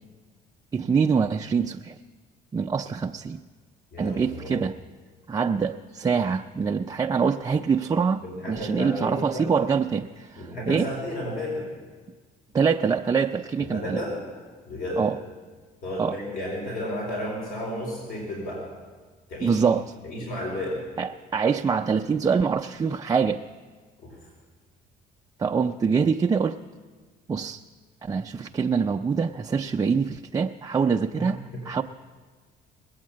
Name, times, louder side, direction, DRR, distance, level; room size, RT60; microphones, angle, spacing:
voice 1, 0.7-1.9 2.5-3.4 4.0-4.8 5.3-10.9 12.5-14.0 15.0-15.2 16.0-16.2 19.4-19.8 21.0-23.4 25.4-26.6 27.3-27.6 28.0-31.8, right 5 dB, 20° right, 3 dB, 0.4 m, -24 dB
voice 2, 3.9-4.6 8.2-9.5 10.4-11.7 13.6-14.2 14.7-15.0 15.8-18.6 19.3-19.6 20.0-20.8 24.0-24.1 31.1-31.3 31.5-31.6, left 1 dB, 60° left, -2 dB, 4.8 m, -32 dB
20.5 x 8.6 x 7.4 m, 1.4 s
cardioid pair, 110°, 17 cm